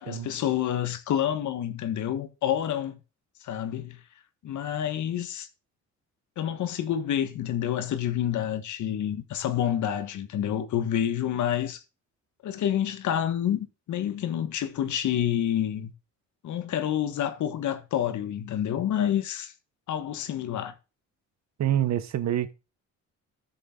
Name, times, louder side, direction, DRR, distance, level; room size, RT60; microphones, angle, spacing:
voice 1, 0.0-3.0 3.4-4.0 4.4-5.5 6.4-11.8 12.4-15.9 16.4-19.5 19.9-20.7, left 10 dB, 75° left, 1.4 m, -28 dB
voice 2, 21.6-22.5, right 11 dB, 65° right, 1.0 m, -26 dB
13.0 x 6.6 x 3.8 m
cardioid pair, 90°, 30 cm